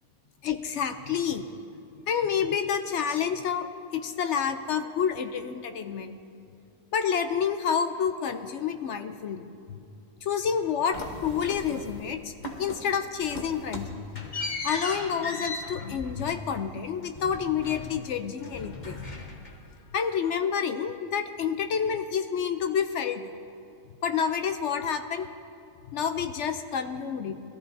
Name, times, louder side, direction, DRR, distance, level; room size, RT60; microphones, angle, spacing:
voice 1, 0.4-1.5 2.1-6.2 6.9-9.8 10.2-12.3 12.6-14.3 14.6-19.1 19.9-23.3 24.0-25.3 25.9-27.4, left 7 dB, 65° left, 8 dB, 0.8 m, -29 dB
sound 1, 10.9-12.1 12.4-12.9 13.2-18.1 18.4-19.7, left 2 dB, 35° left, 1.2 m, -38 dB
21.5 x 13.5 x 2.7 m, 2.5 s
omnidirectional pair, 1.6 m